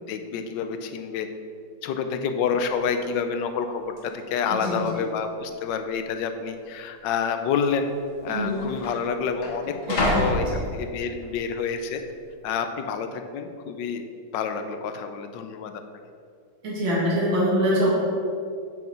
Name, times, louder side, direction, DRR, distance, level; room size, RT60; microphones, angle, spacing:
voice 1, 0.1-1.3 1.8-7.9 8.2-12.0 12.4-14.0 14.3-15.8, left 6 dB, 75° left, 7 dB, 1.3 m, -28 dB
sound 1, 2.5-2.6 2.8-3.3 4.0-4.1 4.8-5.3 5.6-5.7 6.6-6.7 7.7-7.8 8.1-11.3 11.8-12.2, left 1 dB, 45° left, 1.8 m, -30 dB
voice 2, 4.5-5.0 8.3-8.6 9.9-10.4 16.6-17.9, equal, 90° right, -6 dB, 2.8 m, -24 dB
7.2 x 6.0 x 5.8 m, 2.4 s
omnidirectional pair, 2.1 m